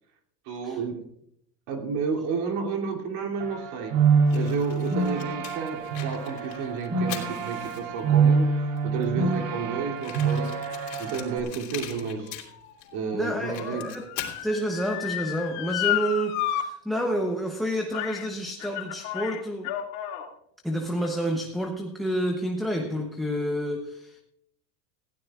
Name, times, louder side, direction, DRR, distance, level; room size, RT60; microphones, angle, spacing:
voice 1, 0.4-1.0 1.7-3.9 4.3-8.5 8.8-10.5 11.0-12.4 12.9-13.9, right 5 dB, 50° right, 2 dB, 2.8 m, -31 dB
sound 1, 3.4-11.4, right 5 dB, 70° right, 2.7 m, -26 dB
Fire, 4.3-8.1 8.8-8.9 9.0-9.1 9.3-9.4 10.0-12.9 13.2-14.4, left 11 dB, 90° left, 3.4 m, -41 dB
Motor vehicle (road) / Siren, 11.4-16.6 17.0-17.1 17.9-18.3 18.6-20.3 21.0-21.1, left 12 dB, 55° left, 2.4 m, -32 dB
voice 2, 13.1-14.1 14.4-19.7 20.6-24.2, equal, ahead, 3 dB, 0.7 m, -29 dB
19.5 x 15.5 x 2.4 m, 0.75 s
supercardioid pair, 150°, 48 cm